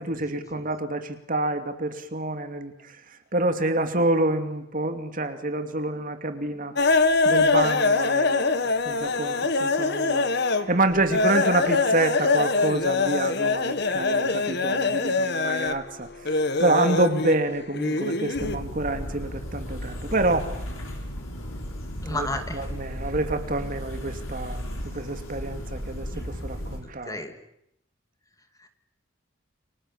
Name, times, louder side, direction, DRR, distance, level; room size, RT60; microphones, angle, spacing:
voice 1, 0.0-3.0 3.3-6.7 7.2-20.5 22.1-22.3 22.5-27.2, right 2 dB, 40° right, 7 dB, 2.7 m, -27 dB
sound 1, 6.8-10.7 11.1-15.8 16.2-18.6, left 3 dB, 55° left, 1.7 m, -23 dB
sound 2, 18.3-26.8, equal, 90° left, 7.6 m, -35 dB
voice 2, 22.0-22.6 26.1-26.2 26.8-27.4 28.6-28.7, left 1 dB, 15° left, 7 dB, 2.4 m, -33 dB
29.5 x 25.5 x 7.4 m, 0.75 s
head